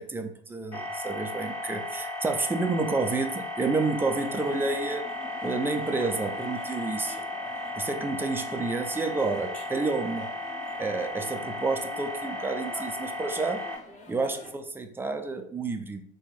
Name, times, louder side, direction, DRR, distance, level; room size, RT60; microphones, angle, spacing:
voice 1, 0.0-5.0 5.4-7.2 7.7-10.3 10.8-13.7 14.1-16.0, right 3 dB, 5° right, 6 dB, 0.4 m, -30 dB
sound 1, 0.7-13.8, left 2 dB, 85° left, 1.6 m, -35 dB
sound 2, 4.1-14.5, left 2 dB, 20° left, 0.8 m, -46 dB
4.1 x 2.2 x 4.3 m, 0.68 s
hypercardioid pair, 85°, 32 cm